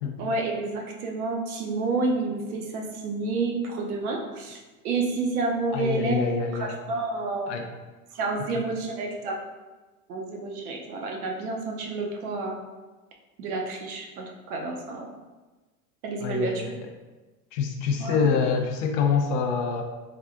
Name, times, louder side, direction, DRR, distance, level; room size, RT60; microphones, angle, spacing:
voice 1, 0.2-6.2 6.5-7.5 8.1-9.4 10.1-12.6 13.4-15.1 16.0-16.6 18.0-18.3, right 3 dB, 70° right, 1 dB, 0.7 m, -29 dB
voice 2, 5.7-6.8 7.5-7.7 16.2-16.8 17.5-19.8, left 6 dB, 50° left, 4 dB, 0.5 m, -26 dB
3.4 x 2.3 x 2.4 m, 1.2 s
hypercardioid pair, 85°, 46 cm